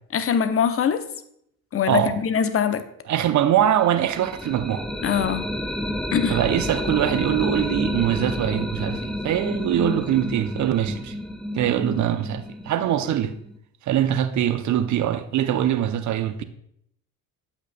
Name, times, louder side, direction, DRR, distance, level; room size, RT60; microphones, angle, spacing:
voice 1, 0.1-1.0 1.7-2.8 5.0-5.5 6.1-6.4, left 7 dB, 30° left, 0.7 m, -22 dB
voice 2, 1.9-2.2 3.1-4.8 6.3-11.2 11.5-13.3 13.9-16.4, right 10 dB, 40° right, 0.7 m, -23 dB
sound 1, 3.8-13.6, left 1 dB, ahead, 0.3 m, -30 dB
8.6 x 7.8 x 2.2 m
hypercardioid pair, 55°, 46 cm